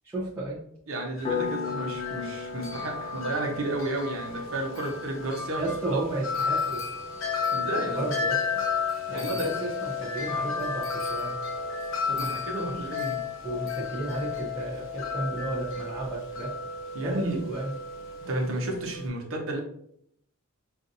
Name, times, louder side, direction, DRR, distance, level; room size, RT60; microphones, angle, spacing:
voice 1, 0.0-0.6 5.6-6.8 7.9-8.6 9.1-11.3 12.1-12.8 13.4-16.5 17.0-17.2 17.5-17.7, right 2 dB, 10° right, -10 dB, 0.9 m, -33 dB
voice 2, 0.9-6.0 7.5-8.0 9.1-9.5 12.1-13.2 16.9-17.4 18.2-19.6, right 1 dB, 70° right, 1 dB, 1.0 m, -32 dB
Wind chime, 1.2-19.1, left 5 dB, 65° left, 0.7 m, -33 dB
Piano, 1.3-11.6, left 6 dB, 30° left, 0.8 m, -40 dB
5.6 x 2.6 x 2.6 m, 0.70 s
head